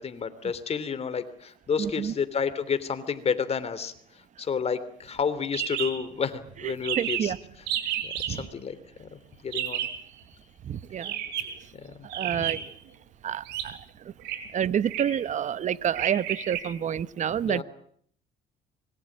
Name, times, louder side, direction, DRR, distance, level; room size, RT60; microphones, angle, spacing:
voice 1, 0.0-3.9 4.4-7.3 8.0-9.9 11.7-11.9 12.3-12.5 17.4-17.6, left 6 dB, 40° left, 13 dB, 3.1 m, -30 dB
voice 2, 1.8-2.1 7.0-7.4 8.3-8.5 10.6-11.2 12.1-12.7 13.2-13.8 14.5-17.6, right 9 dB, 45° right, 16 dB, 1.1 m, -28 dB
sound 1, 5.5-5.9 6.2-6.3 6.5-6.6 6.8-7.3 7.7-8.3 9.5-10.0 11.0-11.6 12.1-12.8 13.4-13.7 14.2-14.4 14.8-15.2 15.9-16.6, right 11 dB, 90° right, 4.6 m, -31 dB
25.5 x 22.5 x 8.7 m, 0.63 s
cardioid pair, 110°, 17 cm